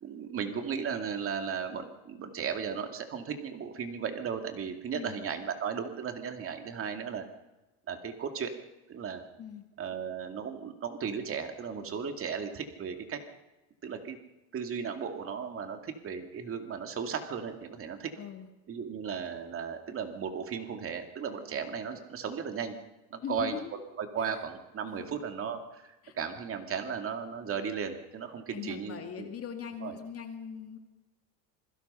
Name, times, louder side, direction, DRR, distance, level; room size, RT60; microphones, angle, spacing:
voice 1, 0.0-7.3 7.9-8.5 8.9-9.2 9.8-13.2 13.8-14.2 14.5-18.1 18.7-22.7 23.1-23.6 24.0-29.3 29.8-29.9, right 6 dB, 30° right, 6 dB, 2.5 m, -36 dB
voice 2, 4.9-5.2 9.4-9.6 18.2-18.5 23.2-23.8 24.2-24.3 24.9-25.2 26.0-26.2 28.5-30.8, left 7 dB, 30° left, 5 dB, 2.3 m, -40 dB
27.0 x 22.5 x 5.7 m, 1.0 s
cardioid pair, 155°, 45 cm